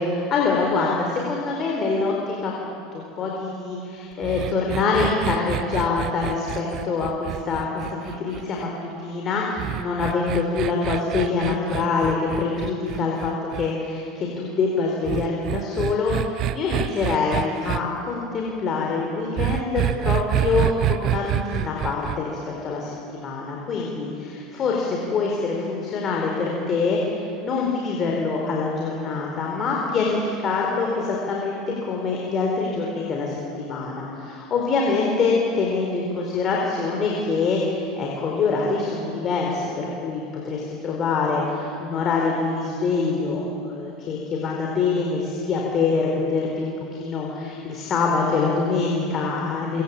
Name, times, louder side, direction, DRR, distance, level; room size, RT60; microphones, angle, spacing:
voice 1, 0.1-31.6 31.9-46.7 47.0-49.8, left 4 dB, 30° left, -1 dB, 4.4 m, -25 dB
sound 1, 4.2-8.6 9.6-13.7 15.0-17.8 19.4-22.2, right 13 dB, 40° right, 0.8 m, -27 dB
25.5 x 24.5 x 8.5 m, 2.7 s
supercardioid pair, 145°, 0 cm